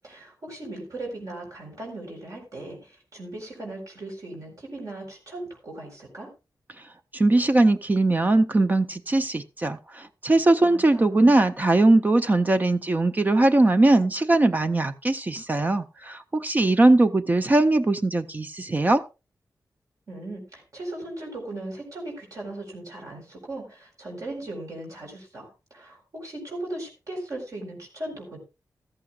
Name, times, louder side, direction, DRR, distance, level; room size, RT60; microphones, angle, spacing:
voice 1, 0.0-6.3 10.6-11.4 20.1-28.4, right 1 dB, 55° right, 0 dB, 4.2 m, -38 dB
voice 2, 7.1-19.0, right 2 dB, 25° right, 9 dB, 0.6 m, -20 dB
14.5 x 14.0 x 2.4 m, 0.28 s
wide cardioid pair, 155°, 7 cm